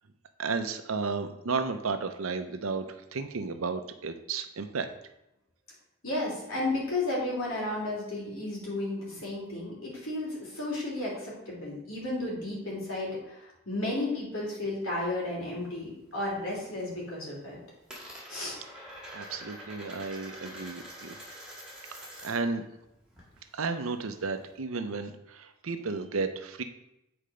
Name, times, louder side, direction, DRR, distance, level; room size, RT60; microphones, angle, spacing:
voice 1, 0.4-4.9 19.1-21.2 21.9-22.6 23.5-26.6, right 4 dB, 80° right, 8 dB, 0.7 m, -33 dB
voice 2, 6.0-17.6 18.3-18.6, left 2 dB, 75° left, -4 dB, 3.2 m, -33 dB
Coin (dropping), 15.0-16.2 16.5-17.0 17.3-22.6 22.8-24.5, equal, 5° right, 1.8 m, -46 dB
8.6 x 4.4 x 5.0 m, 0.87 s
head